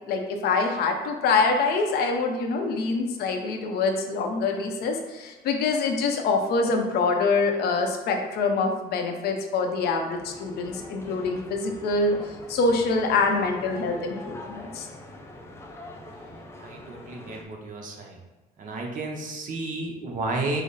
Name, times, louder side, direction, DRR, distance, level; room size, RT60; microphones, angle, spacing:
voice 1, 0.1-14.9, left 4 dB, 70° left, 3 dB, 0.6 m, -25 dB
sound 1, 9.7-17.4, left 1 dB, 15° left, 0.5 m, -43 dB
voice 2, 16.6-18.2 18.6-20.6, right 2 dB, 50° right, 1 dB, 0.8 m, -32 dB
5.0 x 2.0 x 3.9 m, 1.2 s
cardioid pair, 110°, 17 cm